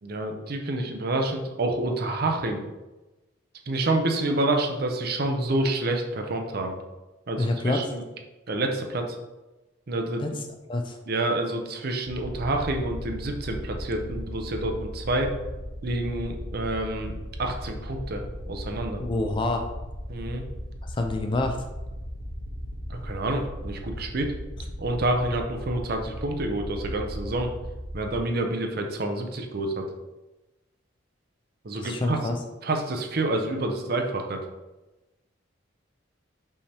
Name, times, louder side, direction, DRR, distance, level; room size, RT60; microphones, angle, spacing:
voice 1, 0.0-2.6 3.7-6.8 7.3-8.0 8.5-9.2 9.9-10.2 11.1-15.3 15.8-19.0 20.1-20.4 22.9-24.3 24.8-27.5 27.9-29.9 31.6-32.2 32.6-34.4, right 2 dB, 50° right, 4 dB, 0.5 m, -28 dB
voice 2, 7.4-7.8 10.2-10.3 10.7-11.0 19.0-19.7 20.9-21.6 31.8-32.4, left 2 dB, 25° left, 5 dB, 0.3 m, -27 dB
sound 1, 12.1-28.2, equal, 75° left, 0.7 m, -37 dB
5.4 x 3.3 x 2.8 m, 1.1 s
head